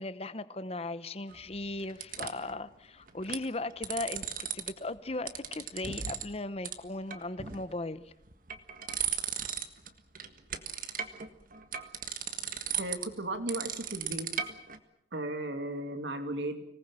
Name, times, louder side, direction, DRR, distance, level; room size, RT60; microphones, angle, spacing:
voice 1, 0.0-8.1, left 2 dB, 35° left, 14 dB, 1.0 m, -37 dB
sound 1, 1.3-2.5 3.1-3.4 3.7-4.7 5.0-6.3 6.6-6.7 7.1-7.7 8.2-9.9 10.1-14.8, right 9 dB, 50° right, 1.6 m, -36 dB
voice 2, 12.8-14.5 15.1-16.6, right 1 dB, 75° right, 7 dB, 2.7 m, -36 dB
25.5 x 19.0 x 7.6 m, 0.76 s
head